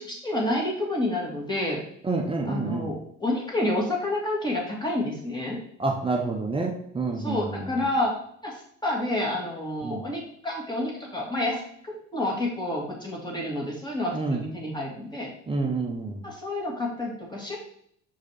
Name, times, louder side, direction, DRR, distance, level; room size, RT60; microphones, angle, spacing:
voice 1, 0.0-1.8 2.5-5.6 7.2-8.1 8.4-8.5 8.8-15.3 16.2-17.6, left 1 dB, 10° left, -2 dB, 2.2 m, -29 dB
voice 2, 2.0-2.9 5.8-7.7 9.8-10.0 14.1-14.4 15.5-16.2, right 3 dB, 15° right, 1 dB, 0.9 m, -28 dB
5.0 x 4.9 x 4.4 m, 0.66 s
figure-of-eight pair, 60°, 37 cm